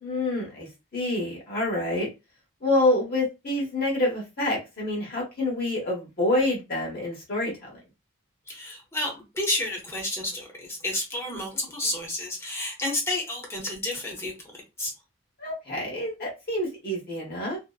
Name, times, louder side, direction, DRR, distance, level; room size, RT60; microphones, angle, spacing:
voice 1, 0.0-2.1 2.6-7.8 15.4-17.6, left 1 dB, 45° left, 1.0 m, -27 dB
voice 2, 8.5-14.9, left 1 dB, 15° left, 0.7 m, -31 dB
2.7 x 2.0 x 2.2 m
head